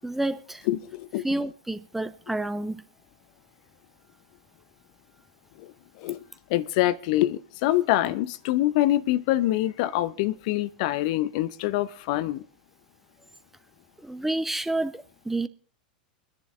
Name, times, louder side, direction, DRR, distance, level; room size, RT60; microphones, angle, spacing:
voice 1, 0.0-0.7 1.2-2.8 14.0-15.5, right 2 dB, 5° right, 0.8 m, -29 dB
voice 2, 0.7-1.3 5.6-6.2 6.5-12.4, left 15 dB, 55° left, 0.6 m, -25 dB
22.5 x 10.5 x 3.6 m
figure-of-eight pair, 90°, 5 cm